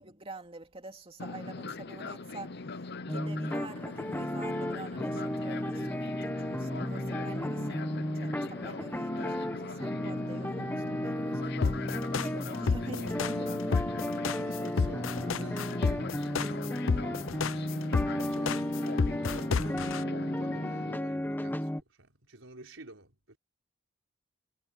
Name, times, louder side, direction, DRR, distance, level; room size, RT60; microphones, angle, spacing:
voice 1, 0.0-14.1, right 2 dB, 30° right, 2.8 m, -47 dB
Fixed-wing aircraft airplane, 1.2-21.0, left 3 dB, 60° left, 0.9 m, -41 dB
sound 1, 3.1-21.8, left 1 dB, 10° left, 1.3 m, -34 dB
sound 2, 11.6-20.0, left 5 dB, 85° left, 0.6 m, -29 dB
voice 2, 12.7-13.5 14.3-16.2 17.2-23.4, right 2 dB, 90° right, 4.7 m, -51 dB
head